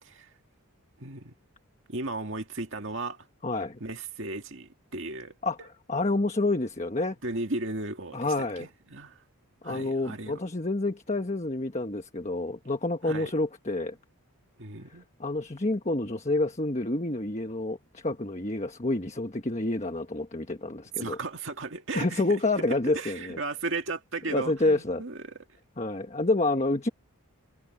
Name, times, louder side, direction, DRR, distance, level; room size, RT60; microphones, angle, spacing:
voice 1, 0.0-0.3 1.0-1.3 1.9-3.3 3.8-5.3 7.2-9.2 9.6-10.4 13.1-13.3 14.6-15.0 21.0-22.4 22.7-25.3, right 3 dB, 55° right, 2.2 m, -35 dB
voice 2, 3.4-3.8 5.4-7.2 8.1-8.7 9.6-14.0 15.2-21.2 21.9-23.4 24.3-25.0 25.8-26.9, left 2 dB, 30° left, 1.3 m, -28 dB
head